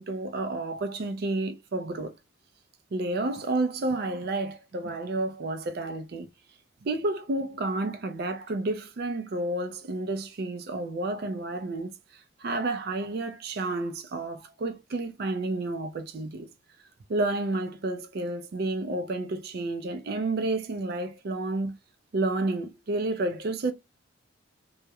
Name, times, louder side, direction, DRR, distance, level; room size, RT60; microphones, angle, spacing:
voice 1, 0.0-2.2 2.9-6.3 6.8-11.9 12.4-16.5 17.1-21.8 22.1-23.7, right 2 dB, 55° right, 0.4 m, -30 dB
2.3 x 2.0 x 2.8 m
head